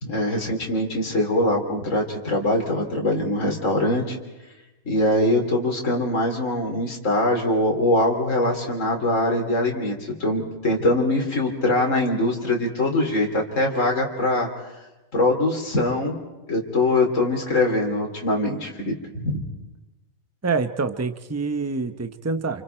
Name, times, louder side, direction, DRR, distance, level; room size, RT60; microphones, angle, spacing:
voice 1, 0.0-4.2 4.9-14.5 15.1-16.2 16.5-19.4, left 1 dB, 60° left, 1 dB, 3.5 m, -23 dB
voice 2, 20.4-22.6, right 4 dB, 15° right, 9 dB, 0.9 m, -26 dB
28.5 x 28.5 x 4.5 m, 1.1 s
omnidirectional pair, 1.4 m